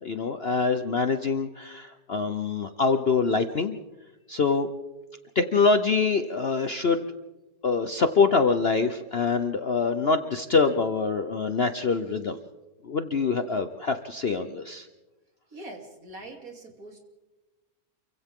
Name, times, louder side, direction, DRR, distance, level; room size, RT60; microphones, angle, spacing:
voice 1, 0.0-3.8 4.3-4.7 5.3-7.0 7.6-12.4 12.8-14.9, left 4 dB, 45° left, 8 dB, 0.9 m, -25 dB
voice 2, 15.5-17.0, right 2 dB, 55° right, 2 dB, 3.5 m, -43 dB
28.5 x 24.5 x 3.7 m, 1.1 s
omnidirectional pair, 1.8 m